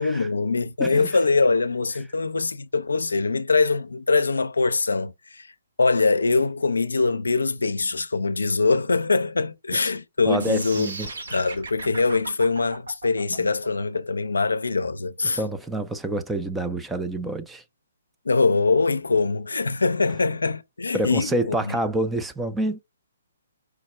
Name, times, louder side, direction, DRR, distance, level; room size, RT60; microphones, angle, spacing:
voice 1, 0.0-5.5 5.8-10.9 11.3-15.4 18.3-21.8, left 3 dB, 85° left, 0.4 m, -23 dB
voice 2, 10.2-11.1 15.3-17.6 20.9-22.8, right 1 dB, 5° right, 0.4 m, -27 dB
sound 1, 10.4-16.4, right 3 dB, 80° right, 1.3 m, -38 dB
4.9 x 2.0 x 4.3 m
hypercardioid pair, 140°, 0 cm